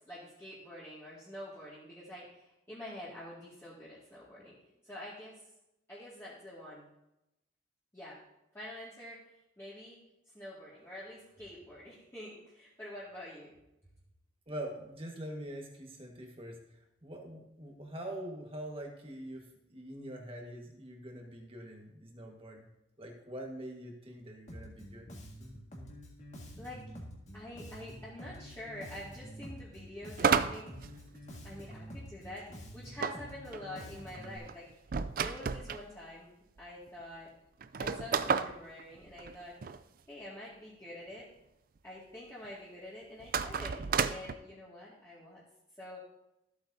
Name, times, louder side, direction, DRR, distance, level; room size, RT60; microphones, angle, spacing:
voice 1, 0.1-4.6 4.8-5.4 5.9-6.9 7.9-8.2 8.5-9.2 9.6-10.0 10.3-13.5 26.6-26.8 27.3-30.7 31.4-34.7 35.2-37.3 37.8-39.6 40.1-41.3 41.8-45.4 45.8-46.0, left 1 dB, 15° left, -10 dB, 2.2 m, -47 dB
voice 2, 14.5-22.7 23.0-25.1, right 1 dB, 30° right, 1 dB, 1.5 m, -44 dB
Bass guitar, 24.5-34.4, equal, 35° left, 1.9 m, -48 dB
sound 1, 30.2-31.7 33.0-35.8 36.6-36.7 36.9-37.0 37.6-39.8 43.2-44.3, right 6 dB, 45° right, 0.4 m, -32 dB
14.5 x 8.3 x 2.8 m, 0.88 s
head